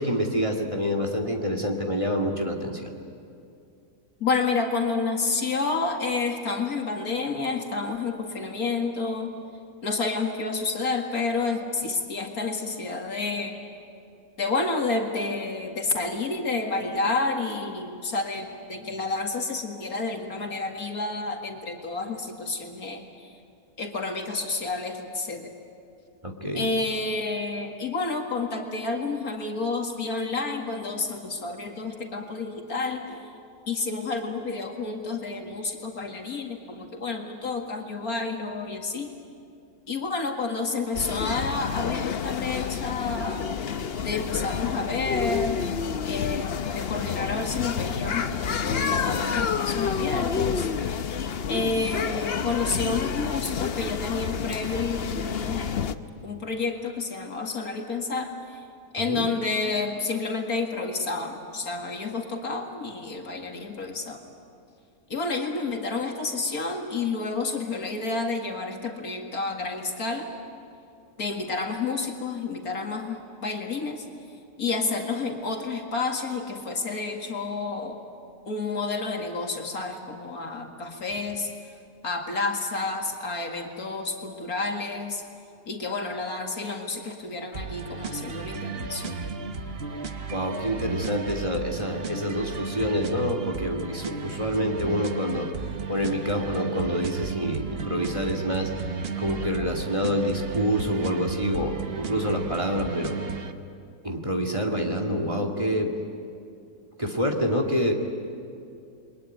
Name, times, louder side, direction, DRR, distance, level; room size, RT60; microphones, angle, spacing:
voice 1, 0.0-2.9 26.2-26.7 59.1-59.2 90.3-95.5 95.9-98.7 99.2-103.2 104.0-105.9 107.0-107.9, equal, 20° right, 3 dB, 2.1 m, -27 dB
voice 2, 4.2-9.3 9.8-13.6 14.4-23.3 23.8-25.5 26.5-33.3 33.7-39.1 39.9-43.5 44.0-45.6 46.1-50.7 51.5-55.7 56.2-58.6 58.9-64.2 65.1-70.3 71.2-74.0 74.6-78.0 78.5-81.5 82.0-85.2 85.7-89.2, left 3 dB, 65° left, 2 dB, 2.4 m, -30 dB
sound 1, 40.9-56.0, left 6 dB, 50° left, 0.9 m, -29 dB
sound 2, 87.5-103.5, right 5 dB, 40° right, 1.2 m, -34 dB
29.0 x 22.5 x 9.3 m, 2.5 s
omnidirectional pair, 1.7 m